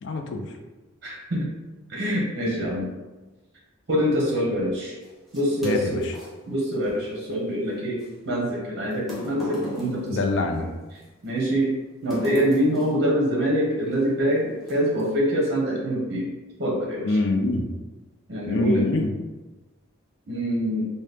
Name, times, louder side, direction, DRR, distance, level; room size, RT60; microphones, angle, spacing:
voice 1, 0.0-0.5 5.6-6.1 10.1-10.7 17.0-17.7 18.4-19.1, left 2 dB, 60° left, 4 dB, 0.4 m, -24 dB
voice 2, 1.0-1.5 1.9-2.9 3.9-4.9 5.3-6.0 6.5-10.2 11.2-11.7 12.0-16.3 16.6-17.2 18.3-18.8 20.3-20.9, equal, 55° right, -3 dB, 0.8 m, -25 dB
sound 1, 5.0-6.3 8.0-8.1 8.9-11.0 12.1-13.1 13.9-14.1 14.6-15.1, left 2 dB, ahead, 0.7 m, -36 dB
2.8 x 2.2 x 3.3 m, 1.2 s
head